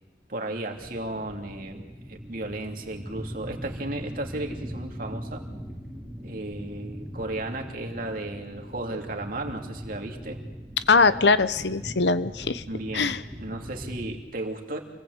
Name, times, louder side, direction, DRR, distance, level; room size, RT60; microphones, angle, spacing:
voice 1, 0.3-5.4 6.2-10.4 12.7-14.8, right 2 dB, 50° right, 3 dB, 2.7 m, -34 dB
sound 1, 0.7-14.1, equal, ahead, 2.4 m, -40 dB
voice 2, 10.9-12.6 12.9-13.2, left 4 dB, 70° left, 13 dB, 1.0 m, -21 dB
27.5 x 19.0 x 8.1 m, 1.2 s
head